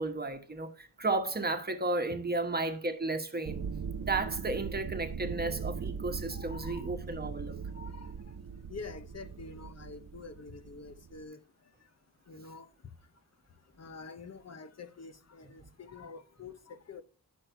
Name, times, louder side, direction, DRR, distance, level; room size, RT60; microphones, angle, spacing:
voice 1, 0.0-3.6 4.0-7.6, right 2 dB, 25° right, 1.1 m, -33 dB
sound 1, 3.5-11.2, right 6 dB, 65° right, 0.9 m, -40 dB
voice 2, 6.3-6.9 7.7-8.1 8.7-11.4 12.3-12.7 13.8-17.0, left 4 dB, 50° left, 0.8 m, -47 dB
9.7 x 6.3 x 4.5 m
wide cardioid pair, 155°, 35 cm